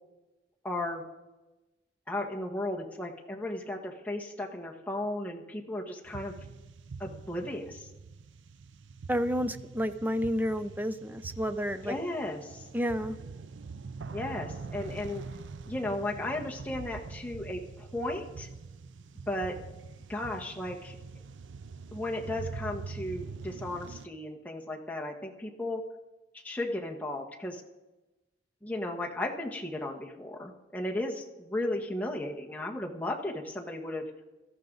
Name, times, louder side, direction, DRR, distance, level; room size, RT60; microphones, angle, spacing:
voice 1, 0.6-1.0 2.1-6.3 7.0-7.9 11.8-12.7 14.1-15.2 15.7-18.5 19.3-19.5 20.1-21.0 21.9-25.8 26.4-27.6 28.6-34.0, left 1 dB, 10° left, -1 dB, 1.5 m, -35 dB
sound 1, 6.1-24.1, right 4 dB, 90° right, 0.5 m, -44 dB
voice 2, 9.1-12.0 12.7-13.2, equal, 10° right, 11 dB, 0.6 m, -30 dB
18.0 x 13.5 x 4.0 m, 1.1 s
head